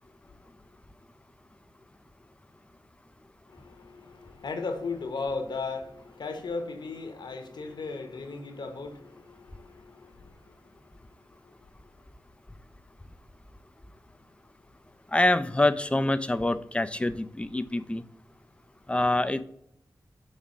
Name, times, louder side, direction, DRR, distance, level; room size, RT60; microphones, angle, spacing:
voice 1, 3.5-10.6 11.4-11.7, left 4 dB, 75° left, 1.0 m, -36 dB
voice 2, 15.1-18.0 18.9-19.4, left 2 dB, 15° left, 0.4 m, -25 dB
5.6 x 3.5 x 4.9 m
cardioid pair, 60°, 7 cm